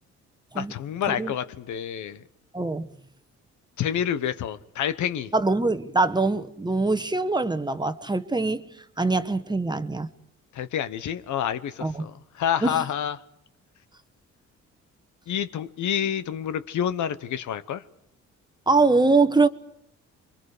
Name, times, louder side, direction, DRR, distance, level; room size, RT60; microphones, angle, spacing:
voice 1, 0.5-2.2 3.8-5.3 10.5-13.2 15.3-17.8, left 9 dB, 75° left, 1.2 m, -28 dB
voice 2, 2.5-2.9 5.3-8.6 9.0-10.1 11.8-12.0 12.6-12.8 18.7-19.5, right 3 dB, 15° right, 1.2 m, -23 dB
29.0 x 23.5 x 5.0 m
cardioid pair, 90°, 30 cm